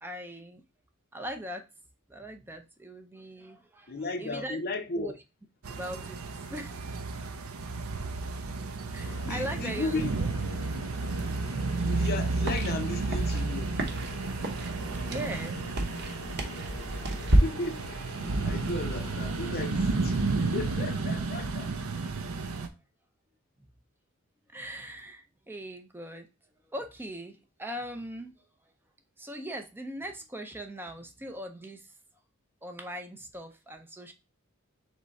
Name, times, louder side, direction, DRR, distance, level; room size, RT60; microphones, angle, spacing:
voice 1, 0.0-0.6 1.1-1.7 2.1-4.6 5.0-5.1 5.7-7.0 8.9-10.0 14.9-15.6 24.5-26.3 26.6-28.4 29.2-31.9 32.6-34.1, right 1 dB, 10° right, 0.5 m, -40 dB
voice 2, 3.9-5.2 9.2-10.1 11.8-13.7 16.5-17.0 17.4-18.2 18.4-22.1, left 3 dB, 50° left, 0.6 m, -35 dB
sound 1, 5.6-22.7, right 3 dB, 85° right, 0.6 m, -32 dB
sound 2, 9.0-20.9, left 3 dB, 75° left, 0.8 m, -46 dB
sound 3, 11.9-17.4, right 1 dB, 55° right, 0.9 m, -31 dB
3.6 x 3.3 x 4.0 m
head